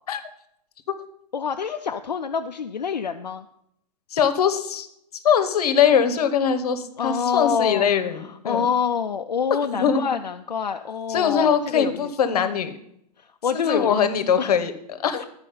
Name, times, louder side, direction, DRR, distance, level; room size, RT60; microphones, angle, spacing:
voice 1, 1.3-3.5 7.0-7.8 8.4-12.1 13.2-14.1 14.4-14.5 15.2-15.3, left 6 dB, 85° left, 6 dB, 0.4 m, -26 dB
voice 2, 4.1-4.9 5.2-8.7 9.7-10.1 11.1-12.7 13.7-15.2, left 7 dB, 65° left, 10 dB, 0.9 m, -22 dB
9.7 x 4.8 x 5.2 m, 0.75 s
figure-of-eight pair, 95°, 21 cm